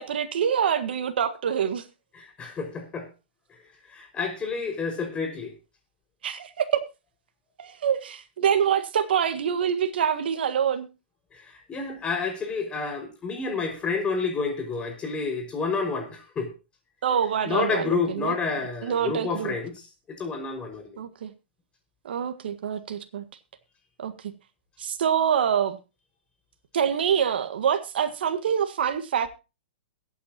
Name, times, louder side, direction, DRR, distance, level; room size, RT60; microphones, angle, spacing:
voice 1, 0.0-1.8 6.2-6.8 7.6-10.9 17.0-18.3 18.8-19.5 21.0-21.3 22.0-23.2 24.0-24.3 24.8-25.8 26.7-29.3, right 8 dB, 70° right, 1.7 m, -25 dB
voice 2, 2.1-3.1 3.9-5.5 11.3-16.5 17.4-19.7 20.1-21.0, left 4 dB, 20° left, 5.5 m, -29 dB
22.0 x 8.9 x 2.9 m
hypercardioid pair, 130°, 6 cm